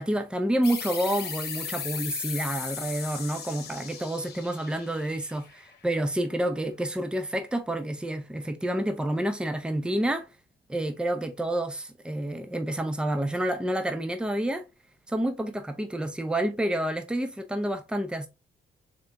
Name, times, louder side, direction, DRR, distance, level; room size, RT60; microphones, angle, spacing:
voice 1, 0.0-10.3 10.7-14.6 15.1-18.3, right 1 dB, 5° right, 0.7 m, -29 dB
sound 1, 0.6-5.9, left 6 dB, 55° left, 1.1 m, -37 dB
3.7 x 3.5 x 2.6 m
cardioid pair, 90°, 20 cm